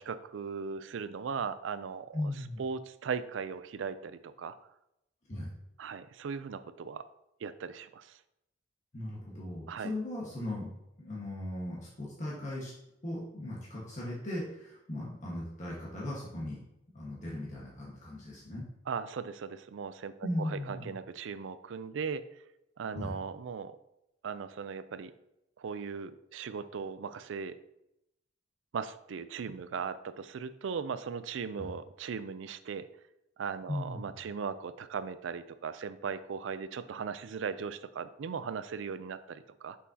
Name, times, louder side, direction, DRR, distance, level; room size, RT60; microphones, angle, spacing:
voice 1, 0.0-2.2 2.6-4.6 5.8-7.1 7.4-8.2 9.7-9.9 18.9-22.2 22.8-23.8 24.2-25.1 25.6-27.6 28.7-32.9 33.4-39.8, right 6 dB, 85° right, 13 dB, 0.4 m, -38 dB
voice 2, 2.1-2.6 5.3-5.5 8.9-10.7 11.0-12.7 13.0-16.6 16.9-18.7 20.2-20.9 22.9-23.1 31.6-31.7 33.7-34.1, left 1 dB, 40° left, -5 dB, 1.4 m, -38 dB
6.2 x 5.7 x 2.8 m, 0.84 s
head